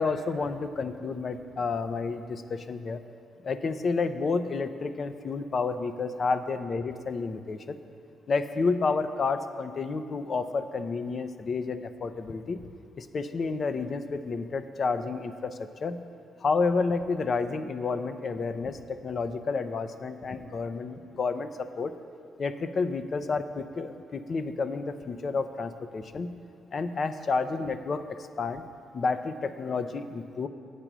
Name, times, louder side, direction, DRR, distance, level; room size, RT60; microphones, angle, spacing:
voice 1, 0.0-3.0 3.4-7.8 8.3-12.6 13.0-16.0 16.4-21.9 22.4-26.3 26.7-28.6 28.9-30.5, left 4 dB, 45° left, 10 dB, 0.6 m, -30 dB
8.9 x 8.3 x 6.1 m, 2.5 s
cardioid pair, 90°, 0 cm